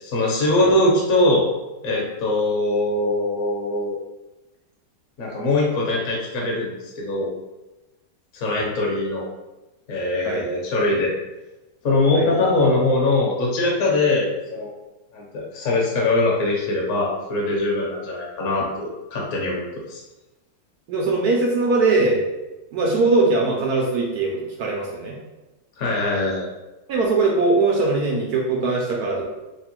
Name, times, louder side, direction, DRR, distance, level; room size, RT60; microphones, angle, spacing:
voice 1, 0.0-1.5 1.8-4.0 5.2-7.3 8.3-9.3 9.9-11.1 11.8-14.7 15.1-20.0 25.8-26.5, left 2 dB, 50° left, -3 dB, 1.1 m, -22 dB
voice 2, 20.9-22.2 22.7-25.1 26.9-29.2, right 3 dB, 80° right, -2 dB, 0.8 m, -21 dB
3.3 x 2.3 x 4.3 m, 1.1 s
omnidirectional pair, 2.3 m